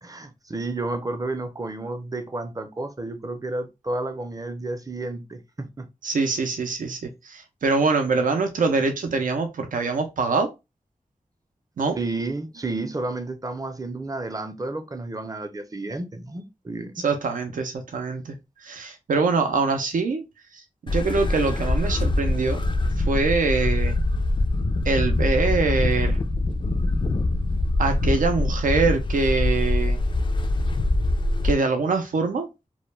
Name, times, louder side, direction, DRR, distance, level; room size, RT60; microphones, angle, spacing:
voice 1, 0.0-5.9 11.9-16.9, right 2 dB, 25° right, 0.5 m, -31 dB
voice 2, 6.0-10.5 11.8-12.0 17.0-18.3 18.6-20.2 20.5-22.6 23.0-24.0 24.8-26.2 27.8-30.0 31.4-32.5, right 4 dB, 90° right, 0.4 m, -24 dB
sound 1, 20.9-31.5, left 2 dB, 35° left, 0.3 m, -23 dB
2.2 x 2.1 x 3.1 m
cardioid pair, 50°, 13 cm